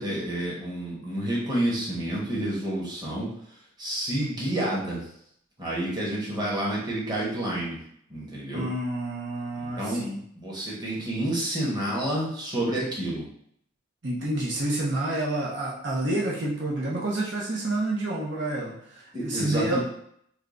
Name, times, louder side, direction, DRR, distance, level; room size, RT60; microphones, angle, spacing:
voice 1, 0.0-3.3 3.8-5.0 5.6-7.8 8.1-8.6 9.6-10.0 10.3-13.2 19.1-19.8, right 1 dB, 20° right, -5 dB, 1.0 m, -29 dB
voice 2, 8.5-10.2 14.0-19.8, right 1 dB, 60° right, -4 dB, 0.7 m, -29 dB
3.6 x 2.2 x 3.7 m, 0.69 s
head